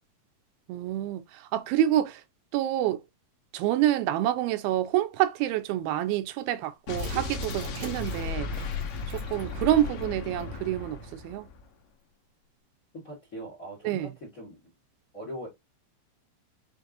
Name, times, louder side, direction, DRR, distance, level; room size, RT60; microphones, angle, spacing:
voice 1, 0.7-2.2 2.5-3.0 3.5-8.7 9.1-11.5 13.8-14.1, right 12 dB, 90° right, 2.5 m, -27 dB
Explosion, 6.9-11.6, left 4 dB, 65° left, 1.9 m, -35 dB
sound 1, 6.9-10.0 10.4-10.5 10.8-10.9, right 7 dB, 70° right, 3.3 m, -46 dB
voice 2, 12.9-14.6 15.1-15.5, equal, 40° left, 1.2 m, -41 dB
6.5 x 2.6 x 2.5 m
omnidirectional pair, 4.3 m